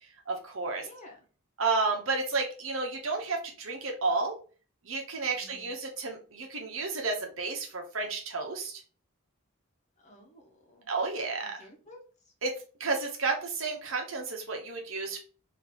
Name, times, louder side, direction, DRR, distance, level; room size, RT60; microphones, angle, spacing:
voice 1, 0.3-0.9 1.6-4.4 4.8-8.8 10.9-11.6 12.4-12.5 12.8-15.2, right 3 dB, 70° right, 1 dB, 1.0 m, -31 dB
voice 2, 0.8-1.2 5.3-5.8 10.0-10.9 11.4-12.3, left 1 dB, 35° left, 0 dB, 1.2 m, -53 dB
3.8 x 2.8 x 2.9 m, 0.38 s
head